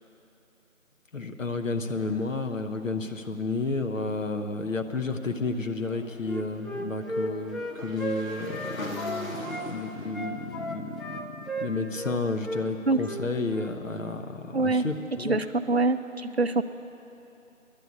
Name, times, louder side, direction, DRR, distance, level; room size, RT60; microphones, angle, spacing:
voice 1, 1.1-11.3 11.6-15.4, left 3 dB, 70° left, 5 dB, 1.0 m, -31 dB
Motorcycle / Engine, 5.8-12.0, left 1 dB, 85° left, 1.8 m, -41 dB
Wind instrument woodwind instrument, 6.2-9.7 10.1-12.2 12.4-12.6 12.9-13.2 13.5-13.7, equal, ahead, 0.4 m, -34 dB
voice 2, 14.5-14.9 15.2-16.6, right 3 dB, 50° right, 10 dB, 0.5 m, -25 dB
10.5 x 8.3 x 9.8 m, 2.9 s
figure-of-eight pair, 165°, 40 cm